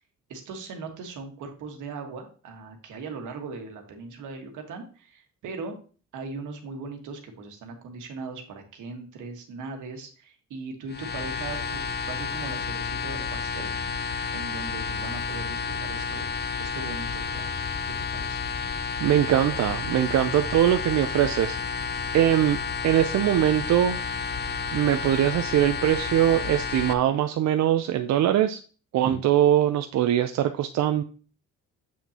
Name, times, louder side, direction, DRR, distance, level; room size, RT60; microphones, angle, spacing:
voice 1, 0.3-5.8 6.1-14.0 14.3-16.3 16.6-17.5 17.9-18.4 20.3-20.4 29.0-29.2, right 4 dB, 80° right, 4 dB, 1.5 m, -39 dB
sound 1, 10.9-26.9, left 5 dB, 35° left, 0.6 m, -31 dB
voice 2, 19.0-21.9 22.1-22.6 22.8-24.0 24.7-28.6 28.9-31.0, right 11 dB, 65° right, 8 dB, 0.5 m, -22 dB
7.3 x 5.9 x 2.8 m, 0.39 s
cardioid pair, 90°, 30 cm